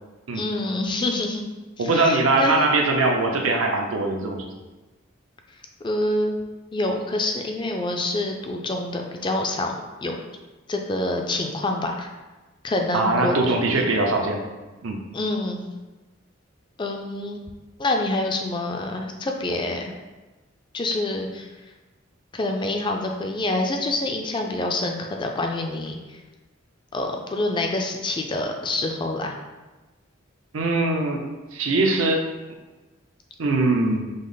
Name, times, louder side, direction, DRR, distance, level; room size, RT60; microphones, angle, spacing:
voice 1, 0.3-1.4 1.8-2.6 5.8-6.4 6.7-9.7 10.0-10.2 10.7-12.1 12.6-13.3 15.1-15.6 16.8-17.4 17.8-19.9 20.7-21.5 22.3-26.2 26.9-29.4, left 2 dB, 25° left, 2 dB, 0.4 m, -26 dB
voice 2, 1.8-4.5 12.9-14.4 14.8-15.0 30.5-31.2 31.5-32.3 33.4-34.0, right 2 dB, 80° right, 2 dB, 0.6 m, -21 dB
5.1 x 2.0 x 3.9 m, 1.2 s
head